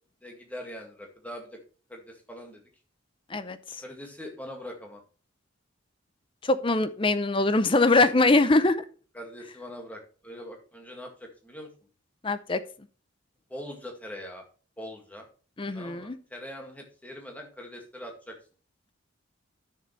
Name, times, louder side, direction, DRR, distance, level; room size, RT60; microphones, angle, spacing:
voice 1, 0.2-1.6 1.9-2.6 3.8-5.0 9.1-11.7 13.5-14.4 14.8-15.3 15.7-18.4, equal, 5° left, 2 dB, 2.0 m, -42 dB
voice 2, 3.3-3.8 6.4-8.8 12.2-12.6 15.6-16.2, left 2 dB, 25° left, 13 dB, 0.5 m, -23 dB
11.0 x 6.7 x 3.2 m, 0.38 s
head